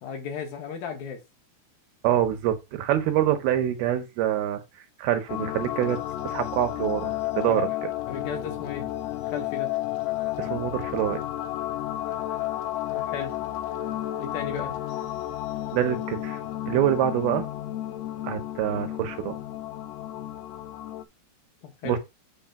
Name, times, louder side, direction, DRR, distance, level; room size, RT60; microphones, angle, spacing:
voice 1, 0.0-1.2 7.5-7.6 8.1-8.9 9.2-9.7 12.9-13.3 14.2-14.8 21.6-22.0, left 6 dB, 65° left, 3.2 m, -35 dB
voice 2, 2.0-4.6 5.0-6.0 6.2-7.9 10.4-11.2 15.7-16.4 16.7-17.5 18.2-19.4 21.8-22.0, right 11 dB, 75° right, 2.7 m, -25 dB
sound 1, 5.3-21.0, left 14 dB, 80° left, 2.6 m, -32 dB
8.7 x 3.2 x 5.8 m
omnidirectional pair, 4.7 m